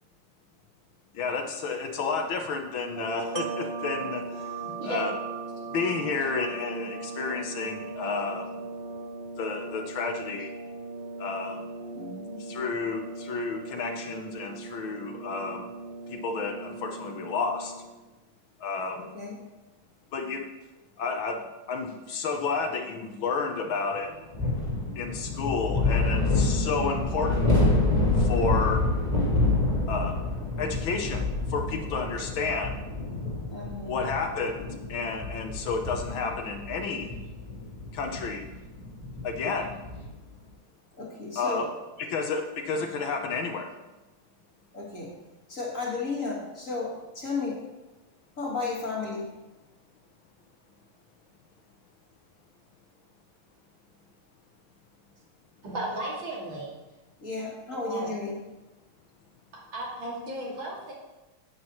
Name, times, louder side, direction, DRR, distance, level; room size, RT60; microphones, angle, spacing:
voice 1, 1.2-4.5 4.8-5.1 5.7-8.6 9.4-10.5 11.2-11.6 12.5-15.7 16.1-17.7 18.6-19.1 20.1-20.4 21.0-21.4 21.7-24.2 25.0-27.5 28.2-28.8 29.9-30.2 30.6-32.8 33.8-37.1 37.9-38.5 39.2-39.8 41.4-41.7 42.1-43.7, left 4 dB, 70° left, 4 dB, 1.7 m, -31 dB
sound 1, 2.9-18.0, right 2 dB, 40° right, 0.8 m, -39 dB
Wind chime, 3.4-9.2 9.6-9.7, right 15 dB, 80° right, 0.9 m, -42 dB
voice 2, 4.6-5.0 55.6-56.7 57.7-58.1 59.5-60.9, right 1 dB, 60° right, -4 dB, 3.1 m, -35 dB
voice 3, 11.9-12.4 19.0-19.4 33.5-34.1 41.0-41.7 44.7-45.1 45.5-47.6 48.4-49.3 57.2-58.4, left 3 dB, 40° left, -3 dB, 1.9 m, -33 dB
sound 2, 24.3-40.2, left 2 dB, 20° right, 2.7 m, -28 dB
9.6 x 8.6 x 3.1 m, 1.1 s
omnidirectional pair, 2.3 m